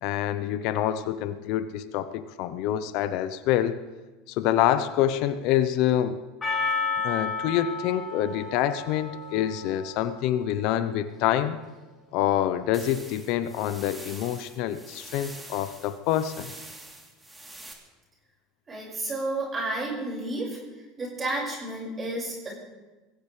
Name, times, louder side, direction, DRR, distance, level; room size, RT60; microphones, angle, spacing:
voice 1, 0.0-3.8 4.3-6.2 7.0-11.6 12.1-16.5, left 11 dB, 65° left, 12 dB, 0.8 m, -26 dB
Percussion, 6.4-10.7, left 4 dB, 25° left, 7.0 m, -32 dB
sound 1, 12.7-17.7, right 2 dB, 10° right, 3.3 m, -45 dB
voice 2, 18.7-20.6 21.0-22.5, right 2 dB, 25° right, -2 dB, 5.6 m, -31 dB
23.0 x 16.0 x 3.3 m, 1.2 s
hypercardioid pair, 85°, 0 cm